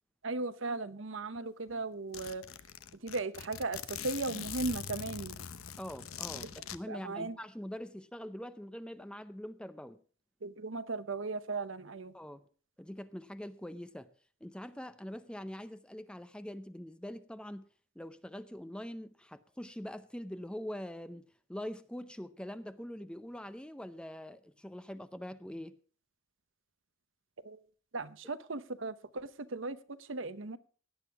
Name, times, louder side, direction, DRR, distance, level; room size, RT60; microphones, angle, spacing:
voice 1, 0.2-2.4 3.0-5.4 6.9-7.4 10.4-12.1 27.4-27.6 27.9-30.6, right 3 dB, 65° right, 0.9 m, -37 dB
Zipper (clothing), 1.3-1.4 1.7-1.8 2.1-6.8, left 8 dB, 90° left, 0.9 m, -42 dB
voice 2, 5.8-10.0 12.1-12.5 12.8-14.1 14.4-17.7 18.0-25.8, equal, 5° left, 0.6 m, -44 dB
17.5 x 10.5 x 3.5 m
head